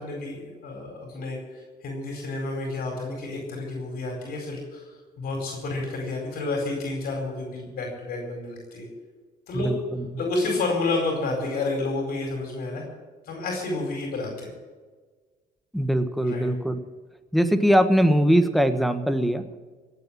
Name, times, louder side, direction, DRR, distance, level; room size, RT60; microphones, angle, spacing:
voice 1, 0.0-8.9 9.5-9.7 10.2-12.8 13.2-14.5 16.2-16.5, left 2 dB, 65° left, 1 dB, 4.6 m, -30 dB
voice 2, 9.5-10.2 15.7-16.8 17.3-19.6, equal, ahead, 8 dB, 1.3 m, -22 dB
16.5 x 8.3 x 8.9 m, 1.4 s
cardioid pair, 110°, 17 cm